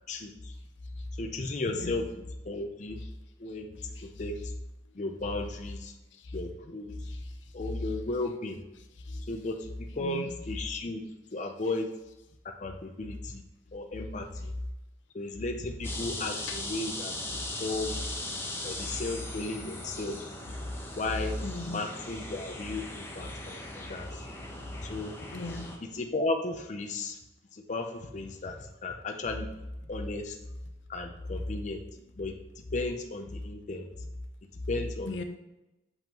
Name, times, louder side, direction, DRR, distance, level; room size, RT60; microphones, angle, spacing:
voice 1, 0.1-0.5 1.2-3.0 3.4-3.7 4.0-4.4 4.9-5.9 6.3-6.9 7.5-8.6 9.3-11.0 11.3-11.9 12.4-13.4 13.7-14.5 15.1-18.0 18.6-20.3 21.0-21.3 21.6-24.2 24.8-25.1 25.8-27.2 27.5-29.5 29.9-30.4 30.9-31.8 32.2-32.3 32.7-33.9 34.7-35.2, left 2 dB, 40° left, 3 dB, 0.6 m, -35 dB
voice 2, 1.6-2.0 3.9-4.1 6.1-6.3 7.0-7.5 9.0-9.2 10.0-10.3 13.0-13.2 16.5-16.6 18.9-19.0 21.4-21.9 25.3-25.7 35.1-35.2, left 2 dB, 80° left, 6 dB, 0.7 m, -38 dB
sound 1, 15.8-25.8, left 1 dB, 15° left, 1.0 m, -39 dB
7.1 x 5.6 x 3.0 m, 0.97 s
head